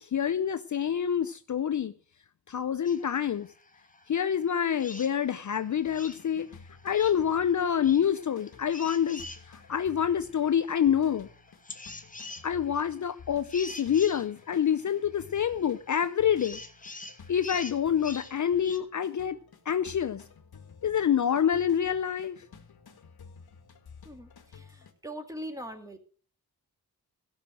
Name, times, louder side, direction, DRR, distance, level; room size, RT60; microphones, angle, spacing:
voice 1, 0.0-1.9 2.5-3.5 4.1-6.5 6.8-11.3 12.4-16.6 17.3-19.4 19.7-20.2 20.8-22.4, left 8 dB, 50° left, 13 dB, 0.6 m, -27 dB
sound 1, 2.8-18.8, left 3 dB, 20° left, 1.4 m, -47 dB
sound 2, 5.8-24.9, left 5 dB, 70° left, 1.9 m, -53 dB
voice 2, 24.1-26.0, equal, 10° right, 5 dB, 2.2 m, -41 dB
16.5 x 6.2 x 7.4 m, 0.43 s
wide cardioid pair, 140°, 38 cm